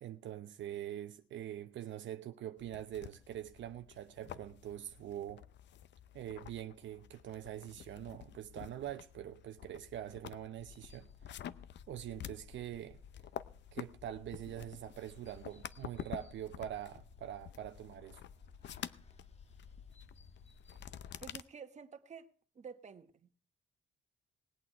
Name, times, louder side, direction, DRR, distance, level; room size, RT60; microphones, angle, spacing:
voice 1, 0.0-5.4 6.1-11.4 11.9-13.0 13.7-18.2, right 11 dB, 70° right, 0.7 m, -44 dB
sound 1, 2.6-21.4, left 10 dB, 65° left, 0.7 m, -50 dB
sound 2, 10.6-21.2, left 5 dB, 35° left, 1.3 m, -57 dB
voice 2, 21.2-22.3 22.5-23.3, right 6 dB, 35° right, 1.2 m, -50 dB
19.5 x 8.7 x 4.5 m
cardioid pair, 145°, 20 cm